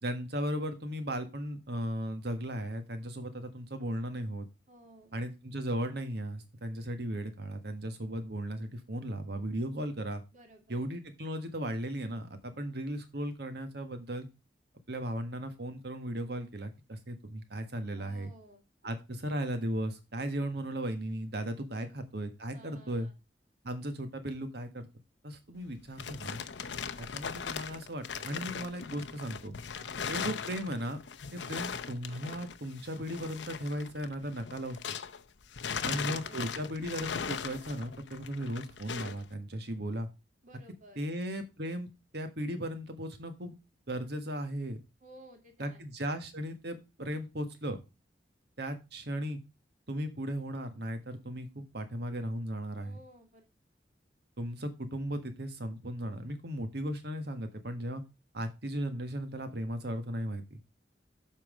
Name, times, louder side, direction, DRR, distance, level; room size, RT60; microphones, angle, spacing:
voice 1, 0.0-4.5 5.1-10.2 10.7-14.3 14.9-18.3 18.8-23.1 23.6-24.9 25.2-26.4 27.0-29.5 30.1-31.0 31.3-35.0 35.8-40.1 41.0-43.5 43.9-44.8 45.6-47.8 48.6-49.4 49.9-53.0 54.4-58.0 58.3-60.6, right 1 dB, 65° right, 8 dB, 1.6 m, -36 dB
voice 2, 4.7-5.2 10.3-10.8 17.9-18.6 21.7-22.0 22.5-23.1 29.7-30.0 35.7-36.7 40.4-41.0 45.0-45.8 52.8-53.5, right 1 dB, 45° right, 3 dB, 2.3 m, -55 dB
sound 1, 25.6-35.2 35.5-39.2, left 6 dB, 80° left, 0.7 m, -39 dB
7.5 x 5.7 x 5.0 m, 0.26 s
head